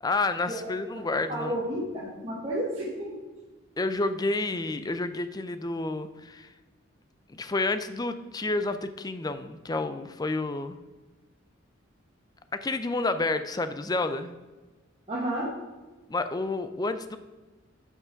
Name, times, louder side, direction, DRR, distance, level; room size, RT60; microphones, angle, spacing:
voice 1, 0.0-1.5 3.8-6.5 7.3-10.8 12.6-14.3 16.1-17.2, left 2 dB, 20° left, 10 dB, 0.4 m, -29 dB
voice 2, 1.3-3.1 15.1-15.5, right 1 dB, 30° right, -7 dB, 1.4 m, -31 dB
6.0 x 5.6 x 5.8 m, 1.2 s
head